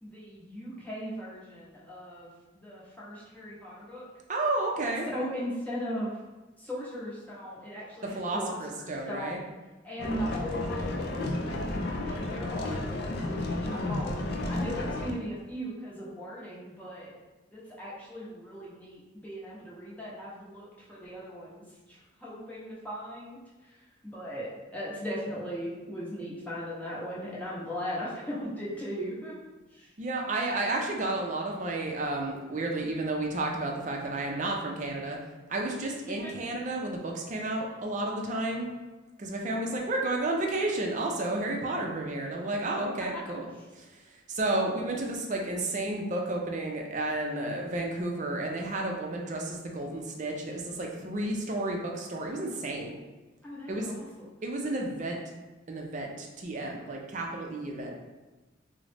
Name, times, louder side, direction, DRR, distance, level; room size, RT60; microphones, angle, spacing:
voice 1, 0.0-2.3 2.5-4.1 5.1-6.1 6.6-9.5 9.8-14.1 14.5-17.1 17.5-21.6 21.9-23.4 24.0-29.3 29.7-29.9 36.2-36.3 44.7-45.0 53.4-54.3, equal, 10° left, -7 dB, 0.8 m, -38 dB
voice 2, 4.3-5.1 8.0-9.4 13.7-14.0 30.0-35.2 35.5-38.8 39.2-43.5 43.8-43.9 44.3-52.9 53.7-53.9 54.4-55.2 55.7-57.9, right 2 dB, 40° right, 0 dB, 0.5 m, -32 dB
sound 1, 10.0-15.1, left 2 dB, 55° left, 0.4 m, -32 dB
3.6 x 2.1 x 3.3 m, 1.2 s
head